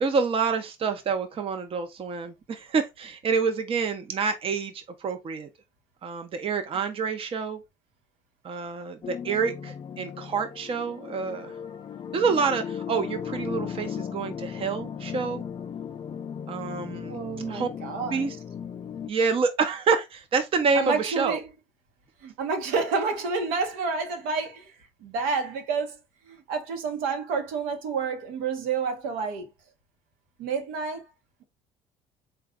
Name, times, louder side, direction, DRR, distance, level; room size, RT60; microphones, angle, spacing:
voice 1, 0.0-5.5 6.0-7.6 8.4-11.5 12.1-15.4 16.5-17.2 17.5-17.7 18.0-18.4 19.1-21.4, right 5 dB, 40° right, 0.7 m, -27 dB
sound 1, 9.0-19.1, left 8 dB, 30° left, 0.4 m, -36 dB
voice 2, 17.1-18.2 20.7-21.5 22.2-24.7 25.0-26.0 26.3-29.5 30.4-31.1, right 5 dB, 80° right, 0.9 m, -29 dB
3.8 x 2.3 x 3.5 m
supercardioid pair, 90°, 15 cm